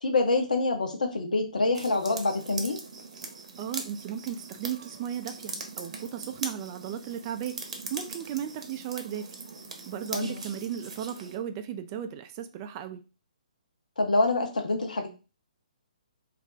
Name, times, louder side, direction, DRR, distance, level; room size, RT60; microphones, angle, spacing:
voice 1, 0.0-2.8 10.1-10.4 14.0-15.1, left 2 dB, 80° left, 4 dB, 0.8 m, -26 dB
sound 1, 1.7-11.4, right 4 dB, 55° right, 0.7 m, -41 dB
voice 2, 3.6-9.4 9.9-13.0, right 9 dB, 30° right, 8 dB, 0.3 m, -36 dB
2.5 x 2.1 x 3.7 m, 0.32 s
hypercardioid pair, 140°, 4 cm